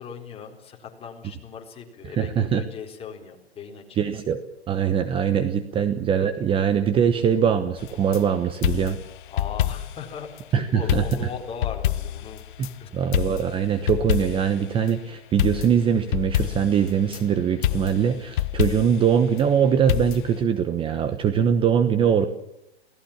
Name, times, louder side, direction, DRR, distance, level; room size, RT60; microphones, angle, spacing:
voice 1, 0.0-4.0 5.7-5.8 9.3-12.4 12.8-12.9, left 6 dB, 20° left, 3 dB, 4.1 m, -38 dB
voice 2, 2.1-2.6 4.0-4.4 4.7-9.0 10.5-11.1 12.6-22.3, right 8 dB, 15° right, 10 dB, 1.0 m, -22 dB
sound 1, 7.8-8.2 8.6-10.1 10.4-10.5 10.9-12.7 13.1-14.6 15.4-17.2 17.6-19.1 19.9-20.4, left 12 dB, 50° left, 1.2 m, -27 dB
29.0 x 18.0 x 7.3 m, 0.82 s
hypercardioid pair, 130°, 32 cm